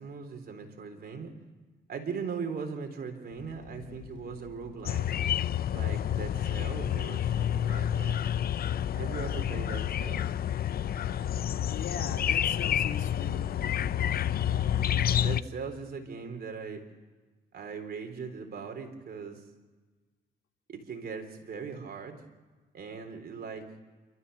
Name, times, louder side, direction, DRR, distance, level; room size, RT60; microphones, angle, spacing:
voice 1, 0.0-1.3 1.9-5.1 5.7-8.2 9.0-10.3 15.2-16.8 17.5-19.4 20.7-22.2 22.7-23.7, right 5 dB, 50° right, 5 dB, 3.7 m, -39 dB
sound 1, 3.3-10.5, left 7 dB, 90° left, 1.3 m, -50 dB
sound 2, 4.9-15.4, left 10 dB, 50° left, 0.5 m, -29 dB
voice 2, 11.6-13.8, left 5 dB, 75° left, 1 dB, 3.3 m, -40 dB
28.5 x 13.5 x 6.9 m, 1.3 s
cardioid pair, 90°, 20 cm